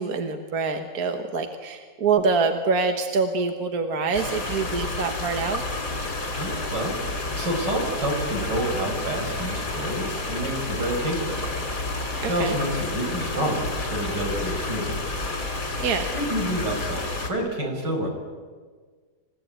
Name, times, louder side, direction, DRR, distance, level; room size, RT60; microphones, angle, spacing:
voice 1, 0.0-5.6 12.4-12.5 15.8-16.0, right 4 dB, 60° right, 6 dB, 1.8 m, -25 dB
sound 1, 4.1-17.3, left 2 dB, 65° left, 4.0 m, -30 dB
voice 2, 6.4-7.0 7.3-11.5 12.3-15.0 16.1-18.1, right 1 dB, 90° right, 1 dB, 6.2 m, -28 dB
27.5 x 16.5 x 9.0 m, 1.5 s
omnidirectional pair, 1.8 m